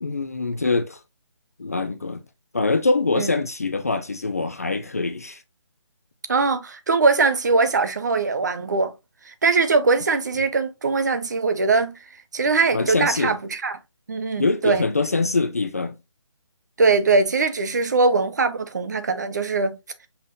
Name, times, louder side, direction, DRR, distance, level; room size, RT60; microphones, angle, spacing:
voice 1, 0.0-1.0 1.6-2.2 2.5-5.4 12.7-13.3 14.4-15.9, left 3 dB, 30° left, 0.4 m, -24 dB
voice 2, 6.3-8.9 9.3-12.0 12.3-13.8 14.1-14.8 16.8-19.8, right 4 dB, 35° right, 0.6 m, -21 dB
5.6 x 3.5 x 2.6 m
hypercardioid pair, 170°, 16 cm